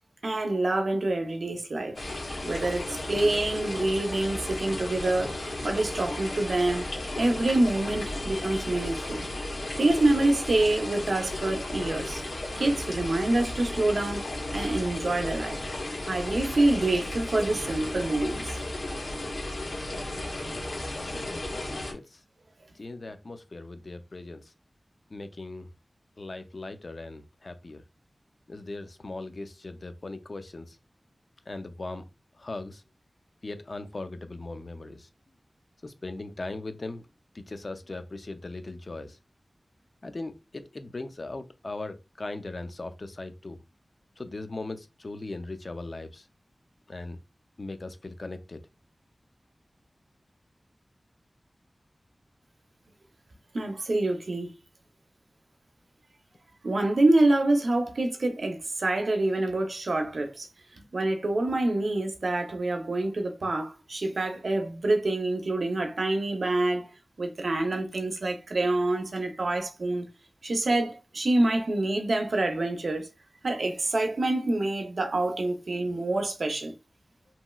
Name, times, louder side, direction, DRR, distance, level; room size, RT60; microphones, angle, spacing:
voice 1, 0.2-2.0 2.4-6.9 7.2-9.3 9.8-12.2 12.6-14.2 14.5-15.6 16.1-18.6 53.5-54.5 56.6-60.5 60.9-66.9 67.2-70.1 70.4-73.1 73.4-76.7, right 2 dB, 80° right, 0.6 m, -26 dB
sound 1, 2.0-21.9, left 1 dB, 90° left, 0.9 m, -34 dB
voice 2, 19.6-20.3 20.9-22.2 22.7-24.4 25.1-25.7 26.2-27.8 28.5-30.8 31.5-32.0 32.4-32.8 33.4-35.1 35.8-37.0 37.3-39.2 40.0-43.6 44.2-46.3 46.9-47.2 47.6-48.6, left 2 dB, 55° left, 0.4 m, -39 dB
3.1 x 2.9 x 2.3 m
wide cardioid pair, 75°, 0 cm